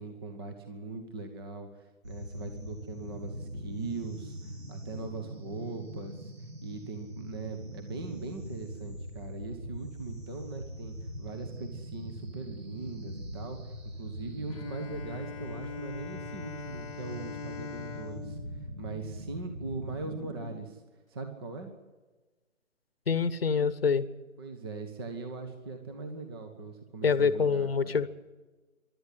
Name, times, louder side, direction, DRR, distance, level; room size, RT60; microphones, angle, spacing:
voice 1, 0.0-6.3 6.6-13.7 14.0-20.8 21.1-21.7 24.4-28.0, right 3 dB, 20° right, 6 dB, 1.2 m, -40 dB
sound 1, 2.0-20.6, equal, 70° right, 6.7 m, -42 dB
Bowed string instrument, 14.5-20.0, left 7 dB, 25° left, 1.2 m, -44 dB
voice 2, 23.1-24.1 27.0-28.1, left 5 dB, 45° left, 16 dB, 1.2 m, -26 dB
24.0 x 12.5 x 9.9 m, 1.2 s
figure-of-eight pair, 155°, 41 cm